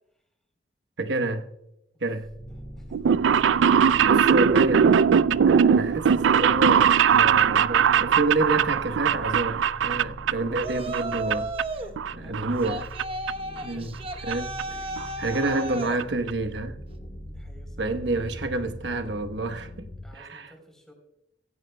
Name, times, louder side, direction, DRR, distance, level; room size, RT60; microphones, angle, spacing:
voice 1, 1.0-1.5 2.0-2.3 4.0-5.0 5.3-11.5 12.1-12.8 13.6-14.0 14.3-14.5 15.2-16.8 17.8-19.9 20.1-20.5, right 2 dB, 70° right, 1.1 m, -28 dB
sound 1, 2.2-20.1, equal, 40° left, 3.4 m, -42 dB
voice 2, 2.4-4.2 4.6-4.8 5.6-6.0 10.6-10.7 12.2-12.6 13.6-14.0 15.1-15.2 17.3-18.8 20.0-20.9, equal, 5° left, 3.6 m, -52 dB
sound 2, 2.9-10.7 10.9-11.6 12.0-13.0 13.3-13.4 14.3-14.4 14.6-14.7 15.0-15.1 15.3-15.6 16.0-16.1 16.3-16.4, right 7 dB, 85° right, 0.4 m, -20 dB
Yell, 10.6-11.9 12.6-16.0, right 2 dB, 30° right, 1.0 m, -34 dB
16.5 x 16.0 x 2.2 m
head